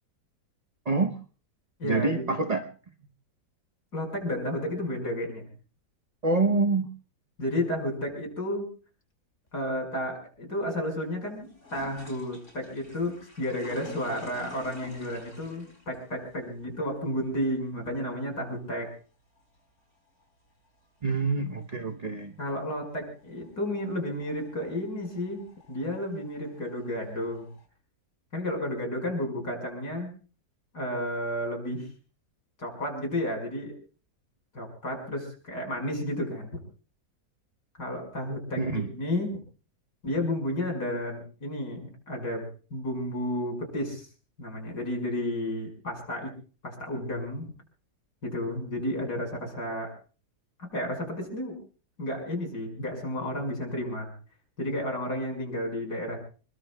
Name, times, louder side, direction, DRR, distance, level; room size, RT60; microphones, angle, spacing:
voice 1, 0.8-1.2 1.8-2.7 6.2-6.9 21.0-22.3 38.6-38.9, right 3 dB, 30° right, 5 dB, 0.8 m, -26 dB
voice 2, 1.8-2.3 3.9-5.5 7.4-8.7 9.5-18.9 22.4-27.5 28.3-30.1 30.7-31.9 32.6-33.7 34.5-36.6 37.8-39.4 40.0-44.1 44.4-46.3 46.6-47.5 48.2-49.9 50.7-51.6 52.0-54.1 54.6-56.2, left 1 dB, 75° left, 3 dB, 6.1 m, -32 dB
sound 1, 9.5-27.7, left 2 dB, 45° left, 4.9 m, -53 dB
27.0 x 22.0 x 2.3 m, 0.38 s
omnidirectional pair, 1.8 m